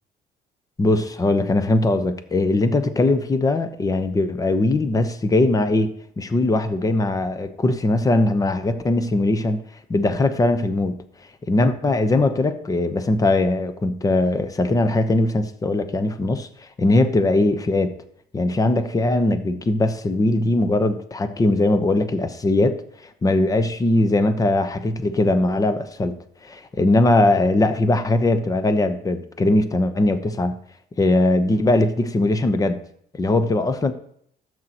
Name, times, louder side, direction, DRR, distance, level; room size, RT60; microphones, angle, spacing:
voice 1, 0.8-9.6 9.9-11.0 11.5-17.9 18.3-22.8 23.2-26.1 26.4-30.6 31.0-32.8 33.1-33.9, left 2 dB, 20° left, 10 dB, 0.9 m, -20 dB
13.0 x 7.8 x 3.0 m, 0.66 s
cardioid pair, 110°, 17 cm